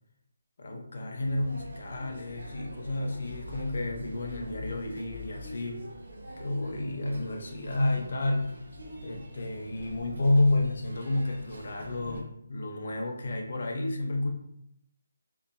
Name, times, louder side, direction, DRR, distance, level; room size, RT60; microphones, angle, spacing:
voice 1, 0.6-5.9 6.4-8.5 9.0-14.3, left 2 dB, 50° left, 1 dB, 0.5 m, -30 dB
sound 1, 1.2-12.2, equal, 55° right, 1.0 m, -44 dB
2.5 x 2.2 x 2.9 m, 0.76 s
hypercardioid pair, 175°, 0 cm